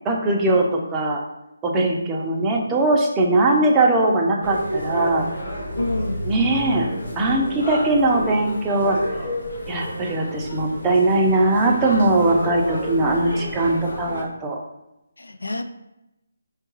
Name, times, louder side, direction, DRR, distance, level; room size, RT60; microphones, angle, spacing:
voice 1, 0.0-1.2 1.6-5.3 6.2-6.9 7.2-9.1 9.7-14.6, right 2 dB, 15° right, -1 dB, 0.4 m, -20 dB
sound 1, 4.4-14.2, equal, 65° left, 0.8 m, -31 dB
voice 2, 5.8-6.3 15.2-15.6, left 2 dB, 90° left, 8 dB, 0.3 m, -27 dB
4.4 x 2.3 x 3.0 m, 0.91 s
figure-of-eight pair, 155°, 0 cm